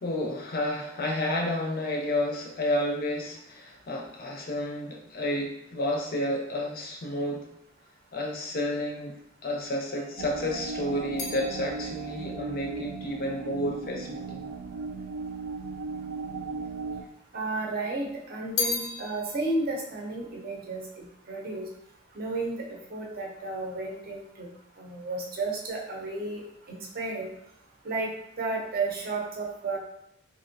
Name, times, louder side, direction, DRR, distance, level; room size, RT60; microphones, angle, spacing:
voice 1, 0.0-7.5 8.1-9.2 9.4-14.4, left 1 dB, 45° left, 1 dB, 0.5 m, -31 dB
sound 1, 9.9-15.1, right 2 dB, 5° right, 0.6 m, -49 dB
sound 2, 10.2-17.0, right 4 dB, 90° right, 0.4 m, -37 dB
sound 3, 11.2-14.6 15.4-16.2 16.5-17.6 18.0-21.5 21.8-22.3, left 5 dB, 90° left, 0.6 m, -38 dB
voice 2, 17.3-20.8 21.3-21.7 22.2-22.6 22.9-24.5 24.8-26.4 26.7-27.3 27.8-28.1 28.4-29.8, right 3 dB, 45° right, -1 dB, 0.6 m, -32 dB
3.1 x 2.5 x 2.6 m, 0.77 s
head